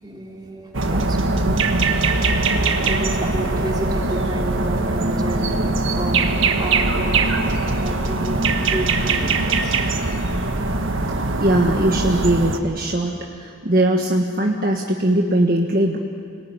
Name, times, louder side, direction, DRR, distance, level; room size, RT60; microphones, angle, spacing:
voice 1, 0.0-10.1, right 1 dB, 20° right, -1 dB, 3.3 m, -32 dB
sound 1, 0.7-12.6, right 3 dB, 75° right, 1.6 m, -21 dB
voice 2, 11.4-16.0, right 1 dB, 45° right, 0 dB, 1.5 m, -20 dB
28.5 x 20.0 x 9.9 m, 2.4 s
head